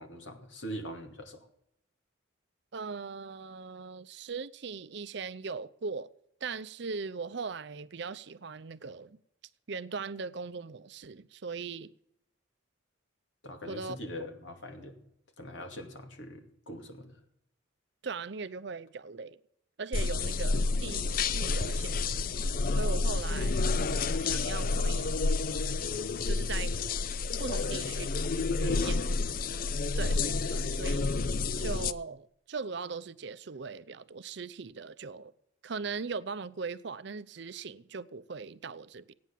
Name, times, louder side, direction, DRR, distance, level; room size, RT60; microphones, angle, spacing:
voice 1, 0.0-1.5 13.4-15.0 15.4-17.2 27.6-27.9 28.4-29.1, equal, 65° left, 2.6 m, -42 dB
voice 2, 2.7-6.1 6.4-9.2 9.7-11.9 13.7-14.0 18.0-19.4 19.8-22.3 22.8-23.6 24.2-25.2 26.2-26.8 27.4-28.3 28.6-29.0 30.0-31.1 31.6-35.3 35.6-39.1, right 5 dB, 55° right, 0.6 m, -39 dB
sound 1, 19.9-31.9, left 3 dB, 45° left, 0.5 m, -29 dB
16.0 x 9.5 x 7.4 m
head